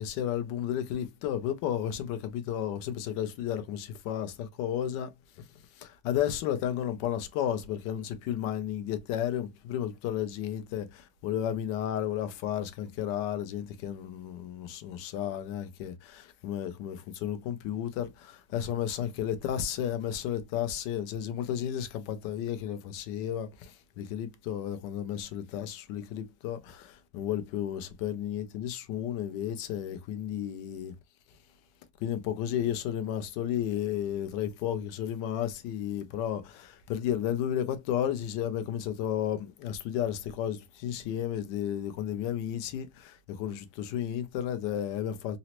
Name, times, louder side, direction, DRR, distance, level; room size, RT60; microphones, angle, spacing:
voice 1, 0.0-5.1 5.8-23.7 24.0-30.9 32.0-45.4, left 10 dB, 75° left, 1.1 m, -33 dB
3.9 x 2.0 x 2.9 m
omnidirectional pair, 2.2 m